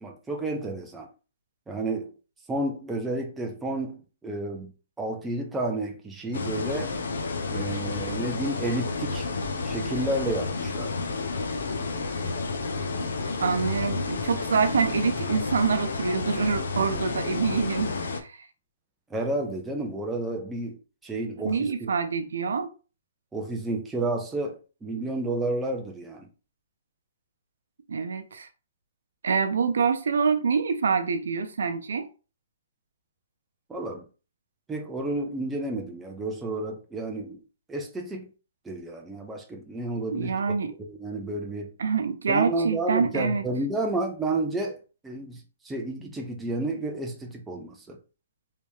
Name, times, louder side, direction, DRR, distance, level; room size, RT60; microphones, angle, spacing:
voice 1, 0.0-1.1 1.7-2.1 2.5-4.7 5.0-7.0 7.5-9.3 9.6-10.9 19.1-20.8 21.0-21.9 23.3-26.3 33.7-34.0 34.7-37.4 37.7-38.3 38.6-41.7 42.3-44.8 45.0-48.0, right 2 dB, 5° right, 0.4 m, -31 dB
sound 1, 6.3-18.2, left 3 dB, 75° left, 0.6 m, -31 dB
voice 2, 13.4-18.3 21.4-22.7 27.9-28.5 29.2-32.1 40.1-40.7 41.8-43.4, right 5 dB, 80° right, 0.5 m, -26 dB
3.3 x 2.8 x 3.1 m
hypercardioid pair, 180°, 0 cm